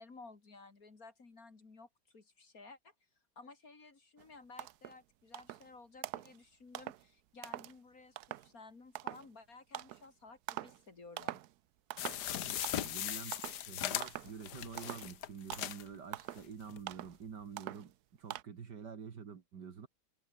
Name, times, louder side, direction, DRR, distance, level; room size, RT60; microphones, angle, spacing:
voice 1, 0.0-2.9 3.4-11.4, left 3 dB, 40° left, 3.0 m, -55 dB
sound 1, 4.2-4.3 4.6-5.0 5.3-5.7 6.0-6.4 6.7-7.0 7.4-7.7 8.2-8.5 8.9-9.3 9.7-10.1 10.5-10.8 11.2-11.5 11.9-12.3 12.6-13.0 13.3-13.6 14.0-14.3 14.8-15.1 15.5-15.8 16.1-16.5 16.9-17.2 17.6-17.9 18.3-18.4, right 14 dB, 75° right, 0.9 m, -44 dB
sound 2, 12.0-15.9 16.4-16.5 16.7-16.8, left 11 dB, 60° left, 1.2 m, -39 dB
voice 2, 12.3-13.4 13.7-19.9, right 6 dB, 50° right, 2.2 m, -48 dB
omnidirectional pair, 2.4 m